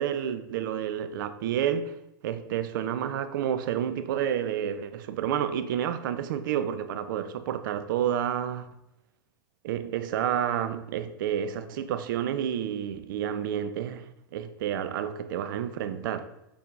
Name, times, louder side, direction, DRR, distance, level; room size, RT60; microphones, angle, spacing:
voice 1, 0.0-1.9 2.2-8.7 9.6-16.3, right 9 dB, 70° right, 0.5 m, -30 dB
6.0 x 3.4 x 2.5 m
hypercardioid pair, 95°, 12 cm